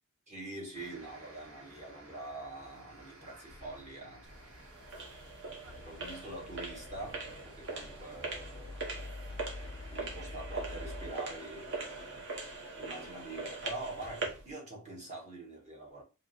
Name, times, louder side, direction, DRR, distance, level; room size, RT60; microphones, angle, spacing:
voice 1, 0.3-4.6 5.7-9.1 9.9-12.3 12.8-16.0, right 2 dB, 35° right, 1.4 m, -45 dB
sound 1, 0.7-12.6, right 1 dB, 80° right, 1.6 m, -57 dB
sound 2, 3.5-4.2 5.7-11.1, left 3 dB, 25° left, 0.3 m, -47 dB
sound 3, 4.2-14.5, right 3 dB, 55° right, 1.0 m, -42 dB
3.4 x 2.7 x 3.9 m
head